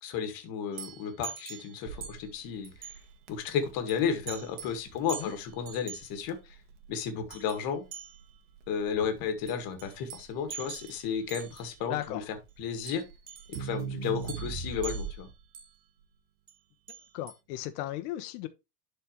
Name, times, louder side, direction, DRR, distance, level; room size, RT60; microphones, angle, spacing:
voice 1, 0.0-2.9 3.3-6.6 6.9-7.9 8.7-12.2 12.6-13.0 13.5-15.3, left 7 dB, 45° left, 1.9 m, -33 dB
sound 1, 0.7-2.4 2.6-3.1 3.9-4.0 4.3-4.8 5.1-6.1 7.3-7.6 7.9-8.4 9.5-11.8 12.9-13.8 14.2-15.7 16.5-16.6 16.9-17.4, right 7 dB, 20° right, 0.4 m, -45 dB
Crackle, 1.9-15.4, right 6 dB, 65° right, 1.9 m, -42 dB
voice 2, 11.9-12.3 17.1-18.5, left 14 dB, 65° left, 1.2 m, -36 dB
11.5 x 4.5 x 3.1 m
supercardioid pair, 160°, 50 cm